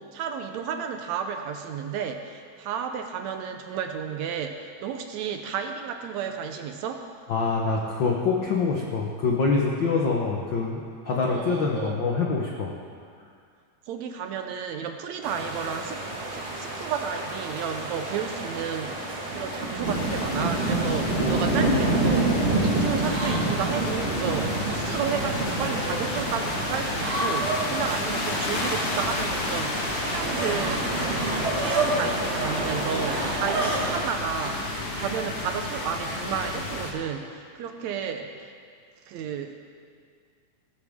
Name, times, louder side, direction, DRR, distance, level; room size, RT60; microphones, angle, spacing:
voice 1, 0.0-7.0 11.3-12.0 13.9-16.0 16.3-31.0 31.4-38.5 39.1-39.6, right 7 dB, 75° right, 5 dB, 1.8 m, -32 dB
voice 2, 7.3-12.8, left 4 dB, 80° left, -1 dB, 1.0 m, -25 dB
sound 1, 15.2-34.0, right 2 dB, 30° right, 1.3 m, -29 dB
sound 2, 19.8-36.9, left 2 dB, 50° left, 2.2 m, -32 dB
sound 3, 20.4-20.7 21.5-22.0 23.0-24.4 25.4-26.0 27.0-27.6 28.5-29.1 29.4-31.9 32.3-32.5 33.1-36.5, right 3 dB, 55° right, 3.3 m, -33 dB
17.0 x 13.5 x 3.6 m, 2.2 s
omnidirectional pair, 3.6 m